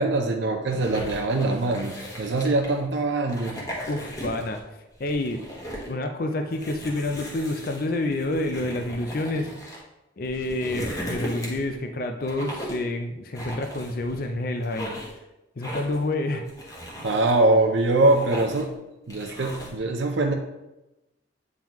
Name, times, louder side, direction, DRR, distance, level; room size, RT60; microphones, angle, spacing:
voice 1, 0.0-3.6 17.0-18.7 19.1-20.3, right 2 dB, 70° right, 3 dB, 0.6 m, -23 dB
sound 1, 0.7-2.8 3.2-4.6 4.9-5.9 6.5-9.8 10.2-11.8 12.2-12.9 13.3-14.3 14.6-15.2 15.6-16.1 16.5-17.3 17.8-18.7 19.1-19.8, equal, 15° left, 1.0 m, -37 dB
voice 2, 3.9-4.6 5.0-5.4 5.9-9.5 10.2-15.0 15.6-16.4, left 2 dB, 50° left, 5 dB, 0.4 m, -28 dB
8.7 x 3.7 x 3.0 m, 0.98 s
head